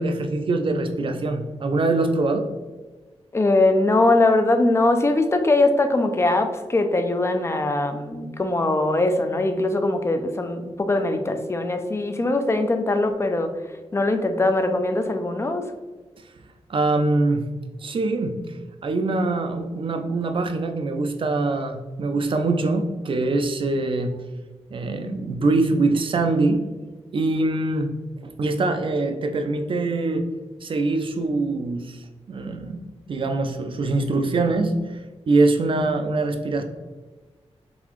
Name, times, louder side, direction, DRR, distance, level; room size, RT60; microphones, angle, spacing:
voice 1, 0.0-2.5 16.7-17.5 17.8-18.4 18.8-24.2 24.7-26.7 27.1-27.9 28.4-30.3 30.6-32.0 32.3-35.0 35.3-36.6, right 2 dB, 50° right, 6 dB, 0.4 m, -23 dB
voice 2, 3.3-13.5 13.9-15.6, left 2 dB, 25° left, 7 dB, 0.4 m, -21 dB
4.0 x 3.5 x 3.0 m, 1.3 s
wide cardioid pair, 145°, 11 cm